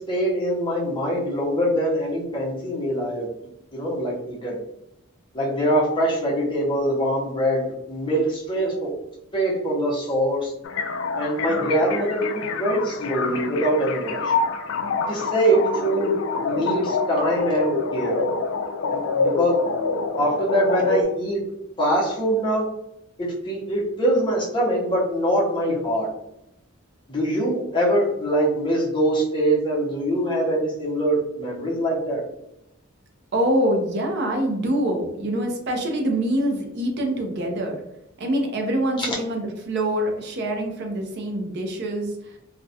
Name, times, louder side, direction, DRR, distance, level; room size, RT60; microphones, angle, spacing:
voice 1, 0.0-3.3 3.7-4.6 5.3-8.9 9.3-10.5 11.1-14.3 15.1-16.1 16.4-18.2 18.9-19.7 20.2-21.4 21.8-22.7 23.2-26.1 27.1-32.2 39.0-39.1, right 1 dB, 25° left, -4 dB, 0.6 m, -23 dB
sound 1, 10.6-21.0, left 4 dB, 65° left, 0.3 m, -26 dB
voice 2, 33.3-37.8 38.2-42.4, right 1 dB, 50° right, 2 dB, 0.4 m, -25 dB
2.3 x 2.0 x 2.6 m, 0.82 s
head